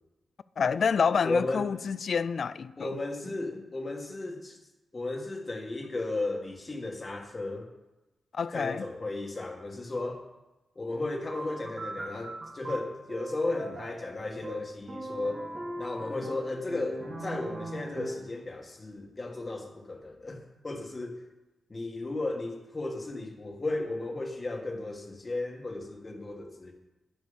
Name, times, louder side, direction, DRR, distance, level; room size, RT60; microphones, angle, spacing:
voice 1, 0.6-2.9 8.3-8.8, left 6 dB, 55° left, 0.4 m, -28 dB
voice 2, 1.2-1.7 2.8-4.6 4.9-7.7 8.5-10.2 10.8-15.5 15.8-21.2 21.7-26.7, left 2 dB, 25° left, 1.9 m, -34 dB
sound 1, 11.3-18.4, right 2 dB, 40° right, 2.3 m, -40 dB
11.5 x 10.5 x 5.3 m
wide cardioid pair, 120°, 0 cm